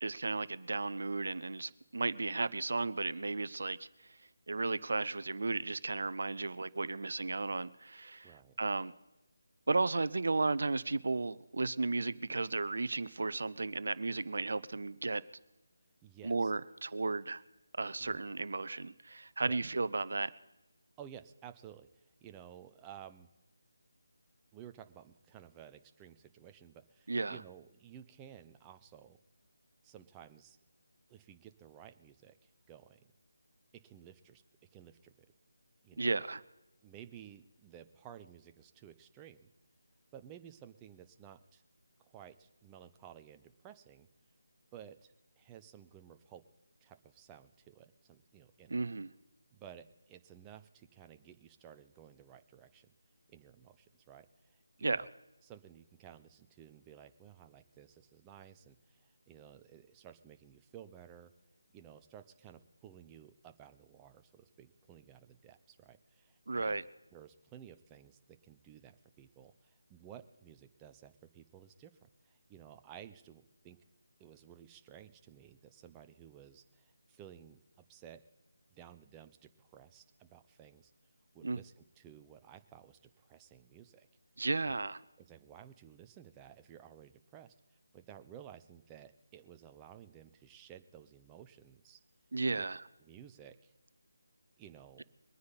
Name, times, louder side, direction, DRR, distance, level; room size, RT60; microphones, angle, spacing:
voice 1, 0.0-3.9 4.5-8.9 9.7-15.2 16.2-17.4 17.8-20.3 27.1-27.4 36.0-36.4 48.7-49.1 54.8-55.0 66.5-66.8 81.4-81.6 84.4-85.0 92.3-92.8, right 3 dB, 65° right, 16 dB, 0.7 m, -34 dB
voice 2, 8.2-8.5 16.0-16.5 18.0-18.2 19.5-19.6 21.0-23.3 24.5-29.2 29.8-30.6 31.1-33.1 33.8-34.4 34.7-35.3 35.8-36.2 36.8-39.5 40.1-41.6 42.0-44.1 44.7-46.4 46.8-48.8 49.5-52.9 53.3-55.1 55.4-61.3 61.7-66.8 67.1-71.9 72.2-73.8 74.2-77.6 77.9-78.2 78.7-80.9 81.3-84.1 84.6-84.8 85.2-87.5 87.9-92.0 92.5-92.6 93.0-93.7 94.6-95.0, right 10 dB, 15° right, 8 dB, 0.7 m, -55 dB
23.0 x 9.5 x 4.1 m, 0.98 s
figure-of-eight pair, 160°, 0 cm